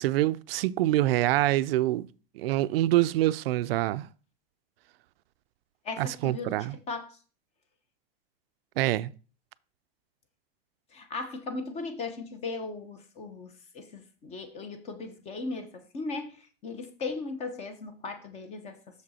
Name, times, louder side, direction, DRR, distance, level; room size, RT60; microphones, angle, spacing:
voice 1, 0.0-2.1 2.4-4.1 6.0-6.8 8.8-9.1, right 15 dB, 70° right, 0.5 m, -25 dB
voice 2, 5.8-6.6 6.9-7.1 10.9-13.5 13.7-18.8, left 3 dB, 20° left, 0.8 m, -37 dB
6.5 x 5.2 x 4.2 m
supercardioid pair, 160°, 30 cm